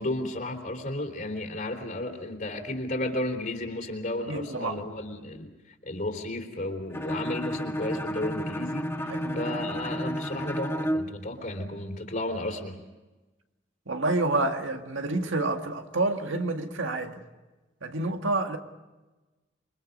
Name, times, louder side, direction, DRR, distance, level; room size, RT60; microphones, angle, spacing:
voice 1, 0.0-12.8, left 1 dB, 45° left, 3.5 m, -33 dB
voice 2, 4.3-4.8 9.1-9.4 13.9-17.2 17.8-18.6, right 2 dB, 85° right, 1.8 m, -28 dB
Bowed string instrument, 6.9-11.2, equal, 15° left, 1.2 m, -31 dB
27.5 x 24.0 x 5.4 m
head